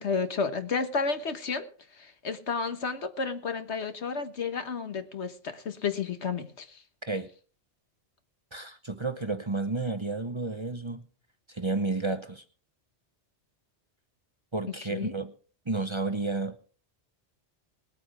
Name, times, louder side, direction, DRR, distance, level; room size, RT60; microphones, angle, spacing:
voice 1, 0.0-6.8 14.7-15.1, left 5 dB, 75° left, 1.6 m, -32 dB
voice 2, 8.5-11.0 11.5-12.4 14.5-15.3 15.7-16.6, right 3 dB, 30° right, 0.8 m, -31 dB
20.0 x 8.5 x 4.8 m
omnidirectional pair, 1.2 m